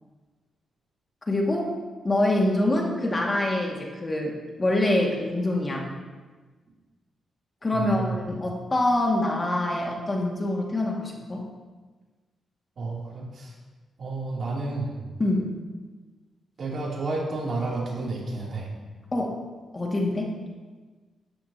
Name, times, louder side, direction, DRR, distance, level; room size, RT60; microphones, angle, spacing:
voice 1, 1.3-1.7 2.0-5.9 7.6-11.5 15.2-15.5 19.1-19.4 19.7-20.4, left 1 dB, 30° left, -1 dB, 2.1 m, -25 dB
voice 2, 7.7-8.2 12.8-13.5 14.0-15.0 16.6-18.7, right 3 dB, 55° right, -4 dB, 3.1 m, -31 dB
13.0 x 10.5 x 2.9 m, 1.3 s
cardioid pair, 80°, 0 cm